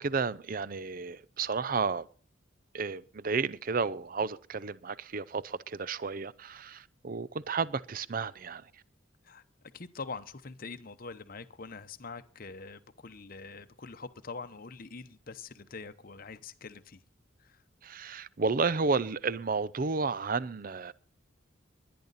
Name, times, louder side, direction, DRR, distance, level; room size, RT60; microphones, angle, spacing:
voice 1, 0.0-2.1 2.7-8.7 17.8-20.9, right 4 dB, 45° right, 0.6 m, -32 dB
voice 2, 9.7-17.0 17.4-17.6, left 4 dB, 50° left, 0.8 m, -44 dB
21.5 x 10.5 x 4.1 m
head